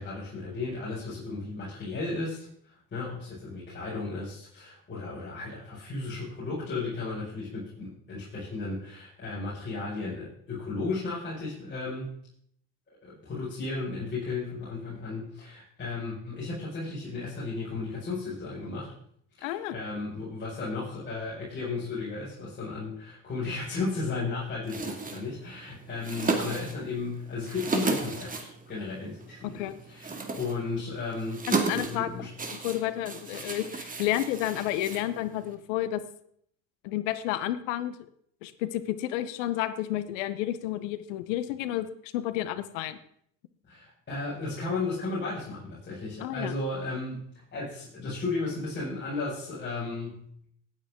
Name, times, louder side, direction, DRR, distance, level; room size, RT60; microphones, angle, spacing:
voice 1, 0.0-12.1 13.0-18.9 19.4-31.5 31.7-32.3 43.7-50.3, left 3 dB, 30° left, -8 dB, 5.6 m, -34 dB
voice 2, 19.4-19.7 29.4-29.7 31.5-32.1 32.5-36.0 36.8-38.1 38.4-43.0 46.2-46.5, left 13 dB, 85° left, 13 dB, 1.0 m, -31 dB
sound 1, 24.6-35.6, right 3 dB, 20° right, 2.2 m, -34 dB
17.5 x 9.0 x 3.7 m, 0.67 s
supercardioid pair, 95°, 37 cm